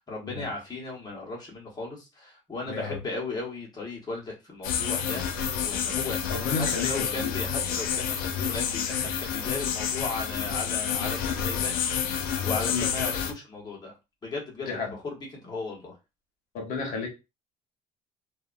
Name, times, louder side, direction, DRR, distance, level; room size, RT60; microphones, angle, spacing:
voice 1, 0.0-13.9 14.2-15.9, left 3 dB, 30° left, 1.1 m, -36 dB
voice 2, 2.7-3.0 6.3-7.3 10.9-11.1 12.7-12.9 14.6-15.0 16.5-17.1, left 4 dB, 70° left, 1.0 m, -32 dB
sound 1, 4.6-13.3, left 8 dB, 85° left, 0.5 m, -29 dB
2.7 x 2.2 x 2.5 m
cardioid pair, 120°, 14 cm